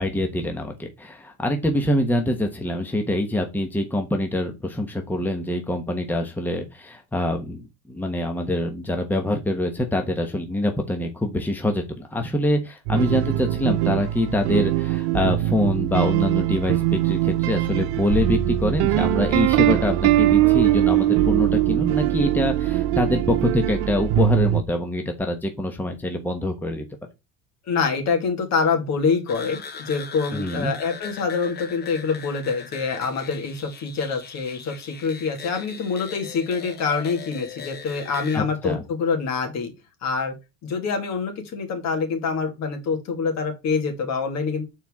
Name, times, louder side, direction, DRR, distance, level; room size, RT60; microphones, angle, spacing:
voice 1, 0.0-26.8 30.3-30.7 38.3-38.8, left 1 dB, 5° left, 4 dB, 1.1 m, -25 dB
sound 1, 12.9-24.6, right 14 dB, 85° right, 0.8 m, -21 dB
voice 2, 27.7-39.7 40.0-40.3 40.6-44.6, left 5 dB, 55° left, 4 dB, 2.1 m, -25 dB
sound 2, 29.3-38.4, left 6 dB, 30° left, 1.1 m, -40 dB
8.3 x 4.4 x 3.6 m, 0.25 s
cardioid pair, 125°, 32 cm